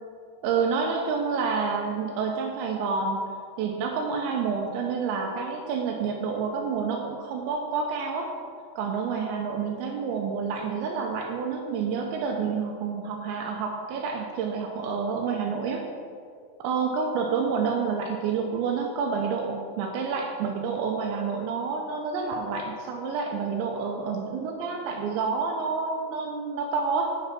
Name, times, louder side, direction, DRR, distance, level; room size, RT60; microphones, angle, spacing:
voice 1, 0.4-3.2 3.6-8.3 8.8-15.9 16.6-27.1, right 5 dB, 80° right, 2 dB, 2.9 m, -28 dB
10.0 x 7.0 x 5.8 m, 2.2 s
omnidirectional pair, 5.5 m